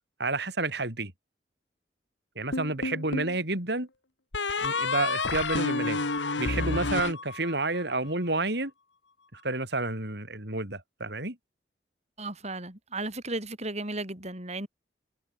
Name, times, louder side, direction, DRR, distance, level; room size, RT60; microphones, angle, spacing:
voice 1, 0.2-1.1 2.4-3.9 4.6-6.0 6.4-8.7 9.3-11.4, right 2 dB, 65° right, 6.0 m, -30 dB
sound 1, 2.5-3.4 4.3-7.8, left 3 dB, 85° left, 2.3 m, -30 dB
voice 2, 12.2-14.7, right 2 dB, 40° right, 6.5 m, -35 dB
head